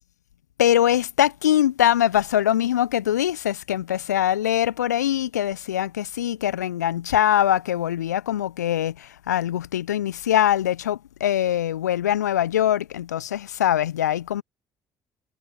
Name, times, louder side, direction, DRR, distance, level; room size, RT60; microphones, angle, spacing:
voice 1, 0.6-14.4, left 11 dB, 80° left, 0.8 m, -22 dB
figure-of-eight pair, 50°, 9 cm